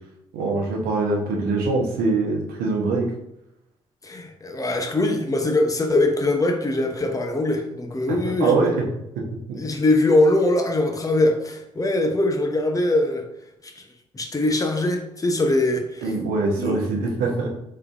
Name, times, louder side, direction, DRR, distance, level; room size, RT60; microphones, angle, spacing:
voice 1, 0.3-3.1 8.4-8.8 9.1-9.2 16.0-17.5, right 3 dB, 80° right, 0 dB, 1.0 m, -23 dB
voice 2, 4.0-8.5 9.5-13.2 13.6-13.8 14.1-16.0 16.6-16.7, left 2 dB, 25° left, 4 dB, 0.9 m, -22 dB
3.8 x 3.3 x 3.5 m, 0.84 s
hypercardioid pair, 45°, 15 cm